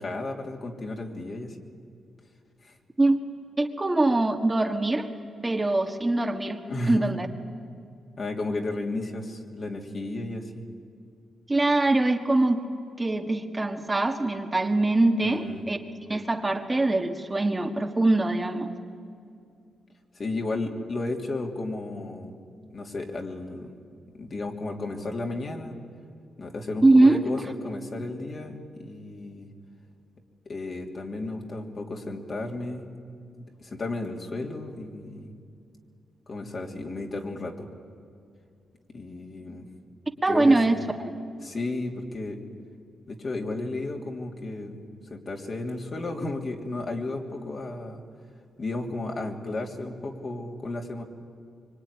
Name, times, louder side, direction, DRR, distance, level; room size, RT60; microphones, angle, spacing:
voice 1, 0.0-1.6 2.6-2.7 6.7-7.1 8.2-10.7 15.2-15.6 20.1-22.3 22.7-23.7 24.1-25.7 26.4-29.5 30.4-32.9 33.3-35.3 36.3-37.7 38.9-39.7 40.3-40.9 41.4-42.4 43.1-44.8 45.1-48.0 48.6-51.0, left 2 dB, 45° left, 1 dB, 3.2 m, -33 dB
voice 2, 3.6-5.1 5.4-6.6 6.9-7.3 11.5-12.6 13.0-18.7 26.8-27.2 40.2-40.8, right 2 dB, 20° right, 4 dB, 1.7 m, -22 dB
24.5 x 24.0 x 10.0 m, 2.4 s
cardioid pair, 90°, 0 cm